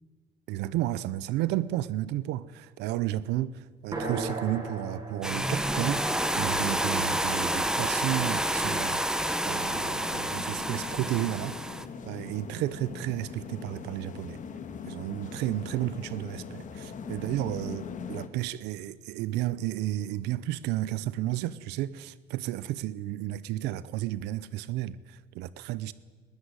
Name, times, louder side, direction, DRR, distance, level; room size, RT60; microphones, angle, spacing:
voice 1, 0.5-6.0 6.3-9.0 9.4-11.6 12.0-14.4 14.8-25.9, right 14 dB, 90° right, 0.7 m, -32 dB
sound 1, 3.9-7.8, right 3 dB, 25° right, 6.5 m, -38 dB
sound 2, 5.2-11.8, right 1 dB, 5° right, 1.2 m, -29 dB
sound 3, 9.7-18.3, left 6 dB, 50° left, 1.8 m, -41 dB
20.0 x 15.5 x 9.8 m
cardioid pair, 110°, 17 cm